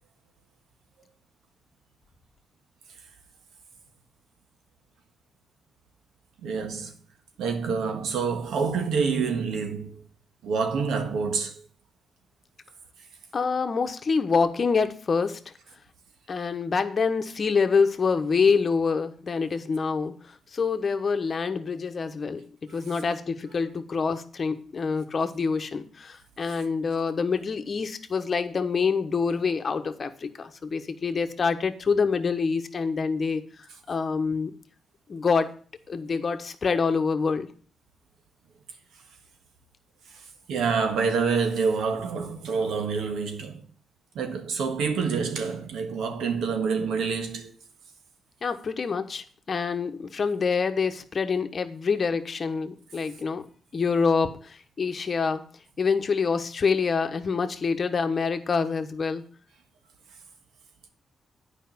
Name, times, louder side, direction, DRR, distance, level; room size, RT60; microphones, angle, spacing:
voice 1, 6.4-6.9 7.4-10.0 10.4-11.5 40.5-43.6 44.1-47.5, right 5 dB, 85° right, 1.5 m, -27 dB
voice 2, 13.3-15.4 16.3-20.1 20.5-22.4 22.7-33.4 33.9-34.5 35.1-35.5 35.9-37.5 48.4-53.5 53.7-55.4 55.8-59.2, left 5 dB, 45° left, 1.1 m, -26 dB
9.2 x 5.2 x 6.8 m
cardioid pair, 85°, 0 cm